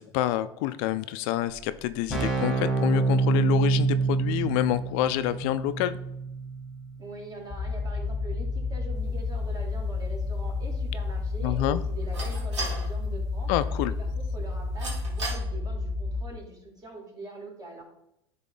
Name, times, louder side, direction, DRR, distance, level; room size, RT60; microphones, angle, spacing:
voice 1, 0.0-6.0 11.4-11.8 13.5-13.9, left 14 dB, 60° left, 13 dB, 0.4 m, -27 dB
Keyboard (musical), 1.5-1.6 1.8-12.4, right 4 dB, ahead, 2.6 m, -30 dB
voice 2, 7.0-13.5 13.9-17.8, right 2 dB, 25° right, -1 dB, 2.6 m, -43 dB
sound 1, 7.5-16.2, left 4 dB, 25° left, 0.9 m, -31 dB
sound 2, 8.9-15.4, right 2 dB, 90° right, 2.1 m, -41 dB
10.5 x 3.7 x 3.8 m, 0.83 s
hypercardioid pair, 90°, 15 cm